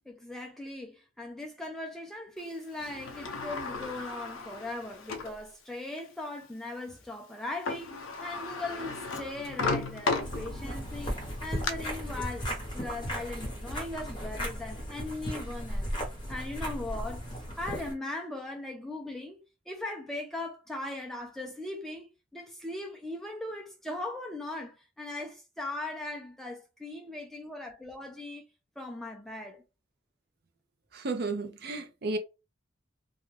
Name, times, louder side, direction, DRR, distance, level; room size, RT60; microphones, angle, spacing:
voice 1, 0.1-15.9 16.3-17.2 17.6-28.4 28.8-29.6, left 2 dB, ahead, 0.4 m, -39 dB
Sliding door, 2.8-5.4 6.0-6.1 7.4-7.5 7.7-10.8 11.3-11.7, left 3 dB, 80° left, 0.5 m, -35 dB
sound 1, 10.2-17.9, equal, 20° left, 0.9 m, -36 dB
voice 2, 30.9-32.2, right 3 dB, 50° right, 0.5 m, -33 dB
2.4 x 2.2 x 3.1 m
head